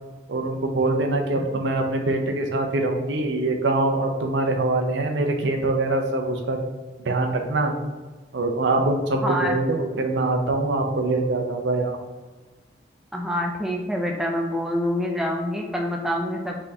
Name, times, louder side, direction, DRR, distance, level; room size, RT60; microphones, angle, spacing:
voice 1, 0.3-6.6 7.1-7.8 8.3-12.0, right 2 dB, 85° right, 4 dB, 0.6 m, -23 dB
voice 2, 9.2-9.6 13.1-16.6, equal, ahead, 0 dB, 0.4 m, -26 dB
4.2 x 3.7 x 2.7 m, 1.3 s
head